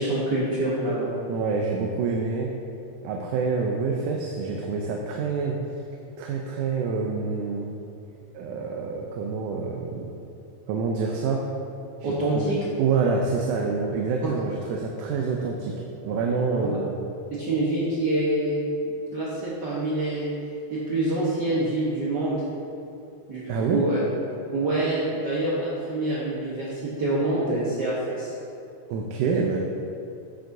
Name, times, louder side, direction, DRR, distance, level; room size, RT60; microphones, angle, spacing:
voice 1, 0.0-1.1 12.0-12.6 16.6-16.7 17.3-18.6 19.1-20.3 20.7-22.4 23.3-24.0 24.5-28.3, right 1 dB, 70° right, -8 dB, 1.0 m, -26 dB
voice 2, 1.3-2.5 3.0-5.6 6.2-7.7 8.3-10.1 10.7-11.4 12.0-12.5 12.8-15.7 16.0-17.0 23.5-23.8 28.9-29.6, right 4 dB, 85° right, 0 dB, 2.2 m, -27 dB
12.5 x 6.5 x 2.7 m, 2.6 s
omnidirectional pair, 3.5 m